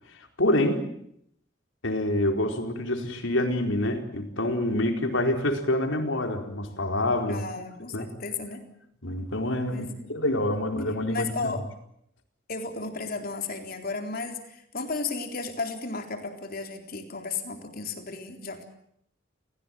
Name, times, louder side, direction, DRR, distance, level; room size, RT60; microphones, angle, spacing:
voice 1, 0.4-0.9 1.8-7.4 7.9-8.1 9.0-11.5, left 1 dB, 85° left, 4 dB, 4.5 m, -26 dB
voice 2, 7.3-8.6 9.7-10.2 11.1-11.7 12.5-18.7, left 3 dB, 50° left, 5 dB, 3.9 m, -34 dB
29.5 x 17.0 x 9.3 m, 0.72 s
head